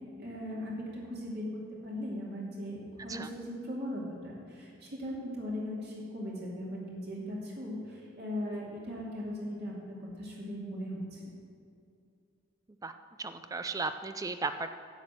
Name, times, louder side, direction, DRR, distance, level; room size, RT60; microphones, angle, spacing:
voice 1, 0.2-11.2, left 1 dB, 50° right, -5 dB, 2.6 m, -39 dB
voice 2, 12.8-14.7, right 3 dB, 15° right, 9 dB, 0.3 m, -36 dB
11.5 x 6.1 x 9.0 m, 2.4 s
head